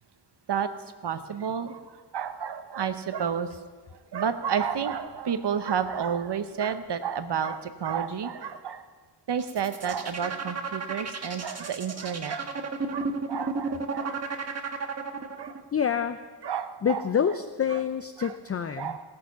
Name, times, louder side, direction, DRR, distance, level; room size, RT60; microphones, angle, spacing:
voice 1, 1.0-1.8 2.1-3.5 4.1-8.8 9.3-12.4 12.9-14.2 15.4-15.5 16.4-17.0 17.7-17.8 18.2-18.3 18.8-19.0, right 7 dB, 80° right, 10 dB, 0.8 m, -30 dB
sound 1, 9.3-15.6, right 4 dB, 40° right, 1.2 m, -33 dB
voice 2, 15.7-16.2 16.8-19.0, left 7 dB, 35° left, 10 dB, 0.4 m, -27 dB
18.0 x 6.6 x 5.7 m, 1.5 s
wide cardioid pair, 95°, 41 cm